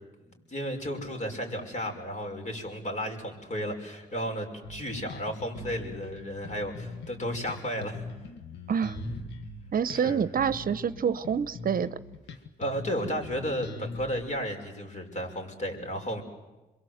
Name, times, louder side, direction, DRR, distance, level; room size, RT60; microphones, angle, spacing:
voice 1, 0.2-8.0 9.0-9.1 10.0-10.2 12.6-16.2, equal, 40° left, 4 dB, 6.2 m, -33 dB
Bass guitar, 4.6-14.2, left 2 dB, 85° left, 1.7 m, -42 dB
voice 2, 9.7-12.0, right 7 dB, 50° right, 15 dB, 0.9 m, -27 dB
27.5 x 22.5 x 8.1 m, 1.1 s
supercardioid pair, 60°, 18 cm